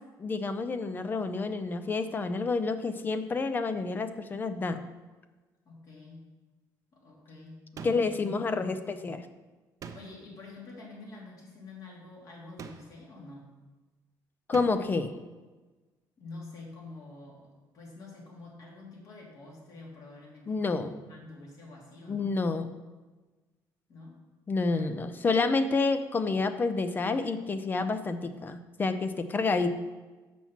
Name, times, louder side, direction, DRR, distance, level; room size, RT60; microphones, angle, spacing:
voice 1, 0.2-4.9 7.8-9.3 14.5-15.1 20.5-20.9 22.1-22.7 24.5-29.7, left 3 dB, 25° left, 10 dB, 0.6 m, -29 dB
voice 2, 5.6-6.2 6.9-8.4 9.9-13.5 16.2-22.3 23.9-24.2 24.7-25.0, left 2 dB, 50° left, -3 dB, 2.8 m, -47 dB
sound 1, 7.8-8.3 9.8-10.4 12.6-13.1 14.5-15.0, right 6 dB, 45° right, 0.7 m, -45 dB
6.2 x 5.8 x 7.1 m, 1.2 s
cardioid pair, 135°, 8 cm